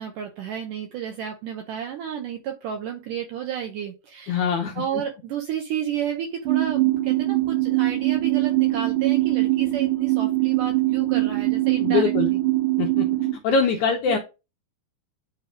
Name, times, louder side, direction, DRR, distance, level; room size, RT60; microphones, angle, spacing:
voice 1, 0.0-12.4 14.1-14.2, right 8 dB, 70° right, 4 dB, 2.2 m, -32 dB
voice 2, 4.3-4.8 11.8-12.3 12.8-13.1 13.4-14.2, left 5 dB, 75° left, 4 dB, 1.8 m, -23 dB
sound 1, 6.5-13.3, right 18 dB, 40° right, 2.1 m, -22 dB
9.1 x 3.4 x 4.9 m, 0.28 s
omnidirectional pair, 4.2 m